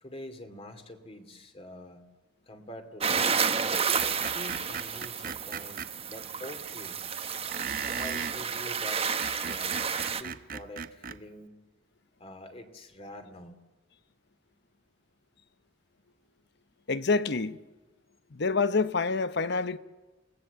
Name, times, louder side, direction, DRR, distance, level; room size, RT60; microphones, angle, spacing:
voice 1, 0.0-2.1 2.5-3.5 4.3-7.0 7.9-11.6 12.2-13.6, left 1 dB, 30° left, 2.6 m, -45 dB
sound 1, 3.0-10.2, right 6 dB, 35° right, 1.2 m, -31 dB
Screech, 4.0-5.9 7.5-8.4 9.0-11.2, right 7 dB, 50° right, 0.7 m, -37 dB
voice 2, 16.9-17.6 18.3-19.8, left 4 dB, 65° left, 0.9 m, -27 dB
28.5 x 18.5 x 8.1 m
head